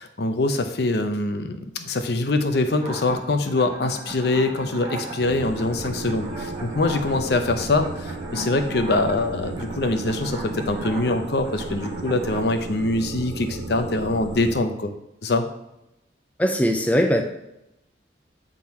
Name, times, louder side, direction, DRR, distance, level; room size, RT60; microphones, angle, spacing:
voice 1, 0.0-14.9 15.2-15.5, left 2 dB, 60° left, 7 dB, 0.6 m, -24 dB
sound 1, 2.8-12.4, right 2 dB, 25° right, 1.1 m, -37 dB
sound 2, 5.2-14.6, right 2 dB, 75° right, 0.6 m, -35 dB
voice 2, 16.4-17.2, equal, 10° left, 3 dB, 0.4 m, -20 dB
7.8 x 3.8 x 4.3 m, 0.86 s
head